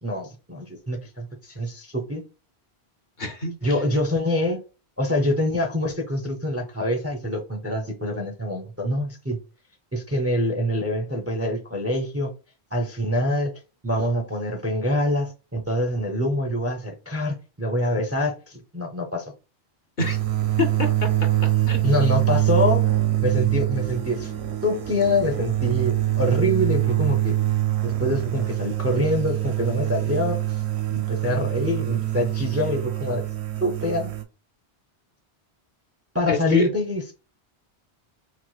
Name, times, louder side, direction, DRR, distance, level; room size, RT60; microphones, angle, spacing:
voice 1, 0.0-2.2 3.6-4.6 5.0-9.4 9.9-12.3 12.7-13.5 13.8-19.3 21.8-22.8 23.2-24.3 24.6-27.4 27.8-30.6 30.9-33.3 33.6-34.1 36.1-37.1, left 1 dB, 20° right, 2 dB, 0.4 m, -25 dB
voice 2, 3.2-3.8 20.0-20.2 20.6-21.1 21.7-21.9 36.3-36.7, left 4 dB, 50° left, 4 dB, 0.8 m, -27 dB
sound 1, 20.0-34.2, right 14 dB, 85° right, 0.8 m, -24 dB
4.6 x 2.0 x 2.3 m, 0.32 s
omnidirectional pair, 1.1 m